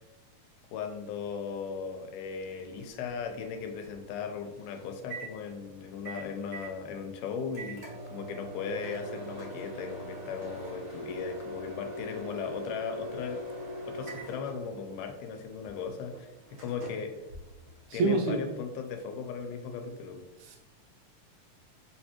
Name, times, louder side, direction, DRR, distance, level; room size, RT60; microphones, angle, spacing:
voice 1, 0.7-13.4 13.9-17.3 17.9-20.2, left 6 dB, 90° left, 5 dB, 2.1 m, -37 dB
Microwave oven, 2.4-18.1, right 1 dB, 60° right, 1.4 m, -43 dB
voice 2, 17.9-18.4, right 3 dB, 80° right, 3 dB, 1.8 m, -25 dB
4.7 x 3.2 x 2.9 m, 1.0 s
omnidirectional pair, 3.6 m